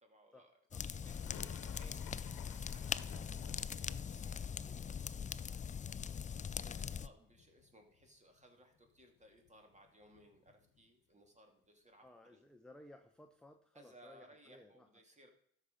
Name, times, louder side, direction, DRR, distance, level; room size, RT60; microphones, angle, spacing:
voice 1, 0.0-12.4 13.7-15.3, right 1 dB, 20° right, 4 dB, 2.3 m, -64 dB
sound 1, 0.7-7.1, left 7 dB, 25° left, 0.3 m, -41 dB
sound 2, 1.0-7.0 7.2-8.1 8.4-8.5 8.7-10.9, left 8 dB, 80° left, 1.1 m, -58 dB
voice 2, 12.0-14.9, left 1 dB, ahead, 5 dB, 0.8 m, -59 dB
13.0 x 5.7 x 5.2 m, 0.69 s
cardioid pair, 90°, 32 cm